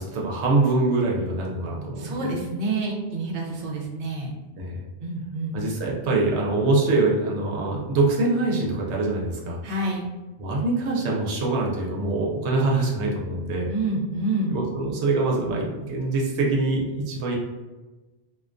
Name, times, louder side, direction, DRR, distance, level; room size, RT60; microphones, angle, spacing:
voice 1, 0.0-2.4 4.6-4.8 5.5-9.6 10.4-13.7 14.5-17.4, right 2 dB, 85° right, -2 dB, 0.9 m, -24 dB
voice 2, 2.0-4.4 5.0-5.6 9.6-10.1 13.7-14.5, right 2 dB, 60° right, -2 dB, 0.7 m, -28 dB
2.3 x 2.2 x 2.4 m, 1.2 s
omnidirectional pair, 1.1 m